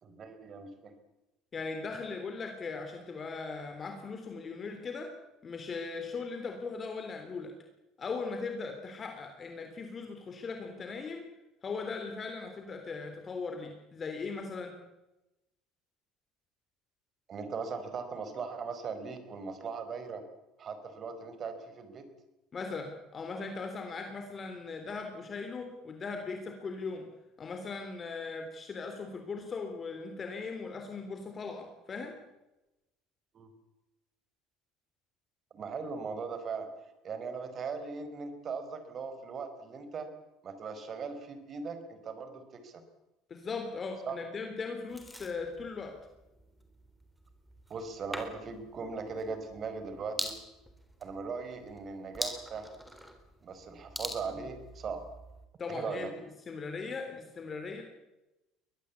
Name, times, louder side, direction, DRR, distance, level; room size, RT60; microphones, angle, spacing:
voice 1, 0.0-0.9 17.3-20.2 20.6-22.0 33.3-33.5 35.5-36.7 37.0-40.1 40.4-42.8 44.0-44.2 47.7-50.3 51.0-52.7 53.4-55.1 55.7-56.1, right 5 dB, 35° right, 9 dB, 4.6 m, -39 dB
voice 2, 1.5-5.1 5.4-7.5 8.0-11.3 11.6-14.8 22.5-27.1 27.4-32.1 43.3-45.9 55.6-57.8, left 4 dB, 30° left, 5 dB, 3.5 m, -39 dB
sound 1, 44.9-55.5, equal, ahead, 3.8 m, -44 dB
22.5 x 20.0 x 8.5 m, 0.99 s
cardioid pair, 125°, 0 cm